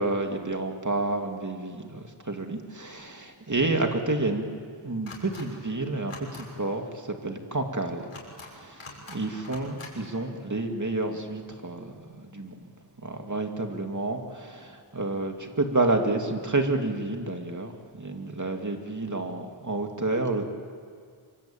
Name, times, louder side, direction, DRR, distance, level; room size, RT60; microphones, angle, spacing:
voice 1, 0.0-4.5 4.8-8.1 8.5-12.7 13.0-20.5, right 2 dB, 35° right, 4 dB, 2.6 m, -30 dB
sound 1, 5.1-5.4 6.0-6.4 8.0-8.5 8.8-9.2 9.4-9.9, left 3 dB, 80° left, 6.3 m, -43 dB
26.5 x 25.0 x 8.9 m, 2.1 s
wide cardioid pair, 65°, 49 cm